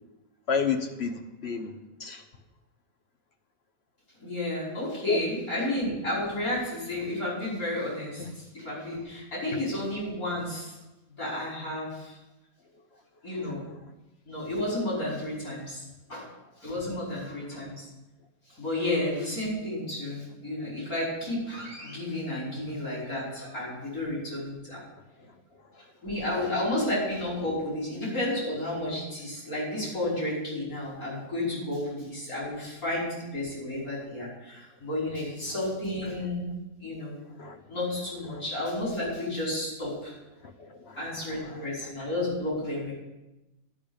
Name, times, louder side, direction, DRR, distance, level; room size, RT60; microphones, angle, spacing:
voice 1, 0.5-1.7 2.0-2.2 5.1-5.2 8.2-8.3 37.4-37.6 38.3-38.4 40.6-41.0 41.4-41.6, left 5 dB, 50° left, 5 dB, 1.1 m, -30 dB
voice 2, 4.2-10.8 11.2-12.2 13.2-13.6 14.3-16.3 16.6-17.8 18.6-24.8 26.0-37.2 37.7-40.1 41.0-42.9, left 1 dB, 90° left, -6 dB, 5.8 m, -32 dB
11.0 x 5.9 x 8.8 m, 1.0 s
omnidirectional pair, 1.5 m